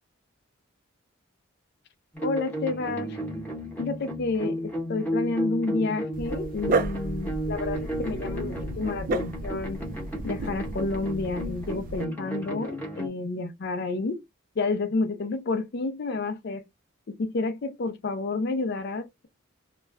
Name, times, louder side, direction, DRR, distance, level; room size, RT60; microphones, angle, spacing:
sound 1, 2.1-13.1, equal, 10° left, 0.8 m, -33 dB
voice 1, 2.2-3.2 3.8-9.8 10.2-14.2 14.6-16.6 17.1-19.3, left 3 dB, 50° left, 0.4 m, -30 dB
Dog, 6.1-12.0, right 2 dB, 40° right, 0.3 m, -33 dB
2.3 x 2.1 x 3.3 m
head